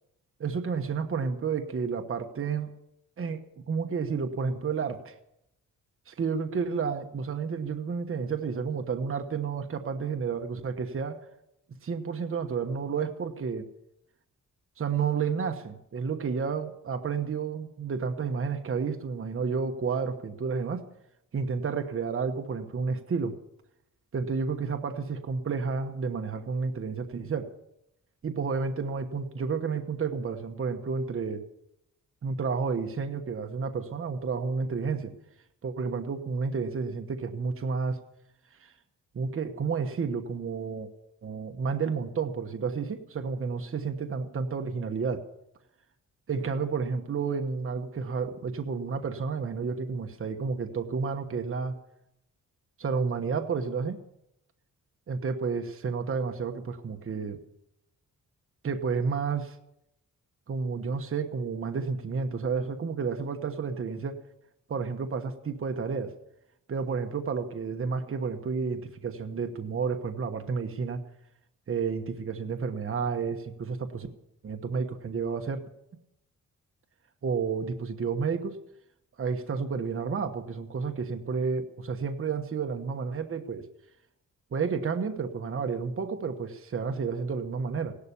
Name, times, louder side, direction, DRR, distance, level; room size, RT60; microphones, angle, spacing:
voice 1, 0.4-2.7 3.2-5.1 6.1-11.2 11.8-13.7 14.8-20.8 21.3-23.3 24.1-27.5 28.2-31.4 32.2-35.1 35.6-38.0 38.6-38.7 39.1-40.9 41.2-45.2 46.3-51.8 52.8-54.0 55.1-57.4 58.6-59.6 60.5-64.2 64.7-66.1 66.7-71.0 71.7-74.1 74.4-75.6 77.2-78.6 79.2-83.6 84.5-88.0, right 5 dB, 40° right, 5 dB, 1.2 m, -31 dB
17.0 x 11.5 x 7.0 m, 0.82 s
wide cardioid pair, 130°, 32 cm